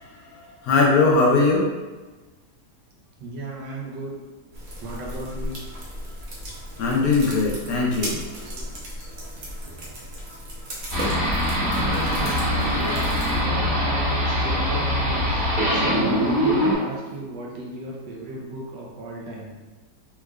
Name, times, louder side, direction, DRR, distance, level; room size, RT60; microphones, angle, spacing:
voice 1, 0.0-1.7 6.8-8.2 8.4-8.5, left 3 dB, 70° left, -2 dB, 0.9 m, -20 dB
voice 2, 3.2-4.2 4.8-5.6 8.1-8.7 11.6-19.5, right 1 dB, 85° right, -2 dB, 1.4 m, -35 dB
sound 1, 4.5-13.4, equal, 55° right, 1.0 m, -35 dB
sound 2, 10.9-16.8, equal, 30° right, 1.3 m, -23 dB
3.6 x 3.1 x 2.3 m, 1.2 s
omnidirectional pair, 1.9 m